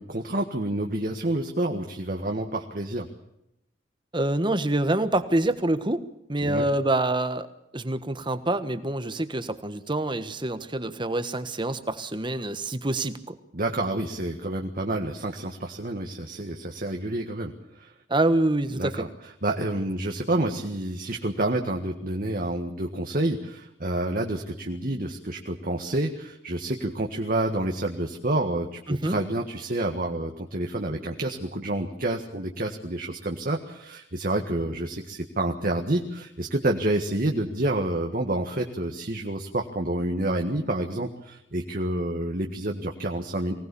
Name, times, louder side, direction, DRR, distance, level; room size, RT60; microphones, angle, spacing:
voice 1, 0.0-3.1 6.4-6.7 13.5-17.9 18.7-19.1 19.4-43.5, right 1 dB, 50° right, 3 dB, 1.7 m, -28 dB
voice 2, 4.1-7.5 7.7-13.3 18.1-19.1 28.9-29.2, right 1 dB, 25° right, 11 dB, 1.3 m, -26 dB
24.0 x 18.5 x 7.0 m, 0.84 s
head